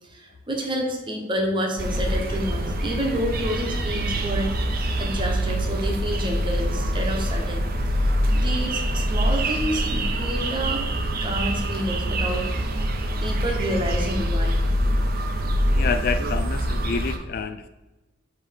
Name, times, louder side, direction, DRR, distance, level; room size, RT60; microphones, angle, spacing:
voice 1, 0.1-4.5 5.0-7.6 8.0-10.8 11.2-12.4 13.2-14.6, equal, 25° right, 0 dB, 1.1 m, -29 dB
sound 1, 1.8-17.2, right 1 dB, 45° right, 0.7 m, -24 dB
voice 2, 15.7-17.7, left 5 dB, 50° left, 9 dB, 0.3 m, -28 dB
7.4 x 3.2 x 5.1 m, 1.1 s
head